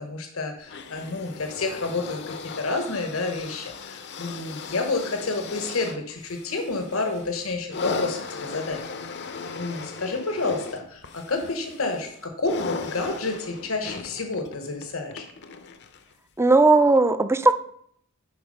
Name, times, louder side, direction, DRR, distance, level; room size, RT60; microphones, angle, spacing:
voice 1, 0.0-8.8 9.5-15.3, left 3 dB, 80° left, 5 dB, 1.2 m, -29 dB
sound 1, 0.7-16.1 17.0-17.1, left 4 dB, 55° left, 0.7 m, -37 dB
voice 2, 16.4-17.5, right 3 dB, 10° right, 11 dB, 0.4 m, -17 dB
10.0 x 4.2 x 5.4 m, 0.66 s
head